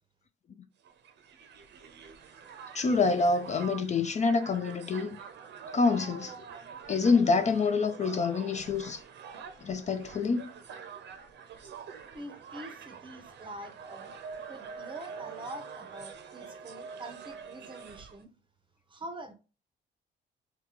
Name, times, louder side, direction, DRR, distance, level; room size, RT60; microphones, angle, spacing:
Crowd, 0.8-18.2, right 6 dB, 60° right, 0.6 m, -46 dB
voice 1, 2.7-5.2 5.7-6.3 6.9-9.0 9.6-10.5, left 4 dB, 35° left, 0.4 m, -26 dB
voice 2, 12.1-14.1 14.5-18.3 18.9-19.3, right 1 dB, 25° right, 0.6 m, -45 dB
3.6 x 2.3 x 2.9 m
cardioid pair, 90°, 20 cm